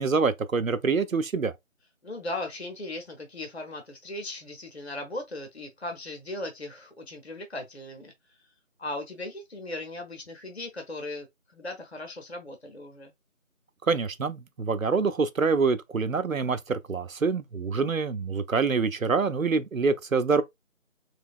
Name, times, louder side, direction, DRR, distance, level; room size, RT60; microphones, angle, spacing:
voice 1, 0.0-1.5 13.9-20.4, right 4 dB, 75° right, 0.7 m, -26 dB
voice 2, 2.0-8.1 8.8-11.3 11.5-13.1, left 2 dB, 50° left, 0.8 m, -37 dB
3.3 x 3.0 x 2.4 m
figure-of-eight pair, 175°, 41 cm